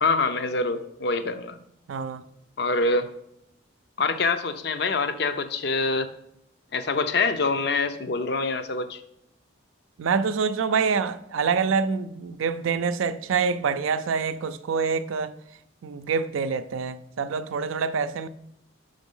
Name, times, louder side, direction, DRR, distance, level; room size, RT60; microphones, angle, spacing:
voice 1, 0.0-1.6 2.6-3.1 4.0-6.1 6.7-9.0, left 3 dB, 55° left, 0.5 m, -25 dB
voice 2, 1.9-2.2 10.0-15.4 15.8-18.3, right 5 dB, 85° right, 0.4 m, -26 dB
5.9 x 5.2 x 5.4 m
head